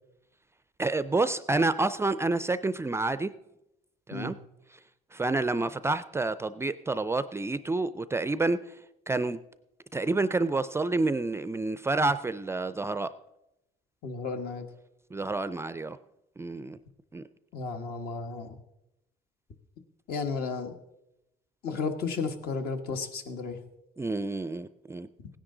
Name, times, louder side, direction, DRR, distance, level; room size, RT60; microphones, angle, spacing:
voice 1, 0.8-3.3 4.1-4.3 5.1-8.6 9.1-9.4 9.9-13.1 15.1-16.0 16.4-16.8 17.1-17.2 24.0-25.1, right 3 dB, 15° right, 14 dB, 0.4 m, -28 dB
voice 2, 14.0-14.7 17.5-18.6 20.1-20.7 21.6-23.6, left 4 dB, 65° left, 6 dB, 1.4 m, -33 dB
17.0 x 10.0 x 3.8 m, 0.89 s
cardioid pair, 110°, 17 cm